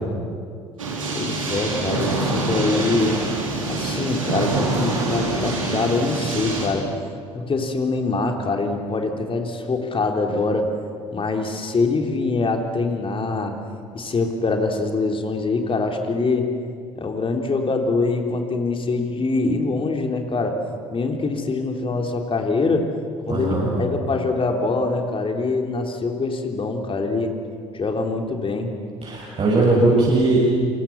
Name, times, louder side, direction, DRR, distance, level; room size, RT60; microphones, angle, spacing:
sound 1, 0.8-6.7, right 2 dB, 85° right, 3.9 m, -25 dB
voice 1, 1.1-3.2 3.7-6.9 7.3-10.7 11.1-13.6 13.9-16.5 17.0-20.6 20.9-22.9 23.3-27.3 27.7-28.7, left 3 dB, 35° left, 3 dB, 3.5 m, -24 dB
voice 2, 23.3-23.7 29.0-30.4, right 2 dB, 40° right, -6 dB, 7.5 m, -19 dB
27.5 x 27.0 x 7.2 m, 2.3 s
figure-of-eight pair, 55°, 16 cm